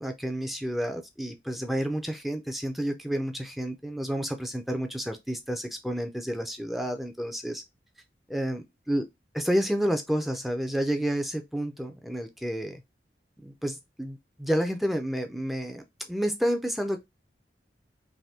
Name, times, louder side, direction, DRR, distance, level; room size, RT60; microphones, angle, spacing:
voice 1, 0.0-7.6 8.3-9.1 9.3-12.8 13.4-17.0, equal, ahead, 0.4 m, -30 dB
3.4 x 2.6 x 2.7 m
head